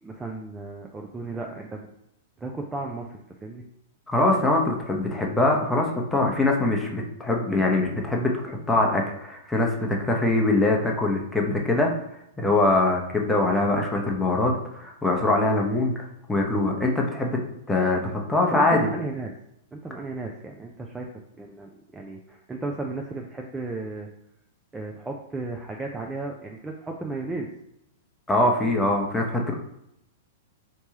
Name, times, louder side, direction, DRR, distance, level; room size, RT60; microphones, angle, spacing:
voice 1, 0.0-1.9 2.4-3.6 18.5-19.3 19.7-21.1 21.4-24.1 24.7-27.5, right 3 dB, 10° right, 1 dB, 0.4 m, -34 dB
voice 2, 4.1-11.9 12.4-15.9 16.3-17.4 17.7-18.9 28.3-29.5, left 2 dB, 5° left, 0 dB, 0.8 m, -23 dB
4.4 x 2.9 x 2.8 m, 0.80 s
figure-of-eight pair, 100°, 0 cm